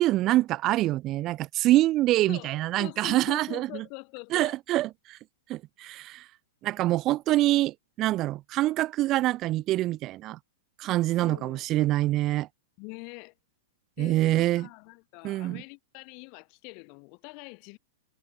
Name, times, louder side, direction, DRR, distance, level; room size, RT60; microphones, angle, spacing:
voice 1, 0.0-3.8 4.3-5.2 5.5-6.3 6.6-10.4 10.8-12.5 14.0-14.7 15.2-15.6, right 16 dB, 25° right, 1.2 m, -25 dB
voice 2, 2.3-4.6 11.1-11.7 12.8-13.3 14.0-17.8, left 36 dB, 35° left, 6.4 m, -44 dB
supercardioid pair, 165°, 0 cm